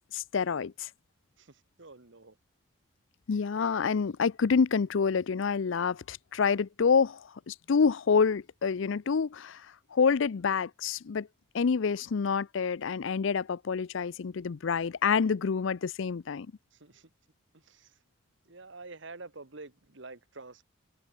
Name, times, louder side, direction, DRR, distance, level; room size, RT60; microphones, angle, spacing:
voice 1, 0.1-0.9 3.3-9.6 9.9-11.3 11.5-16.5, left 5 dB, 65° left, 0.5 m, -27 dB
voice 2, 1.4-2.4 16.7-17.1 17.5-18.0 18.4-20.6, right 3 dB, 60° right, 1.4 m, -48 dB
head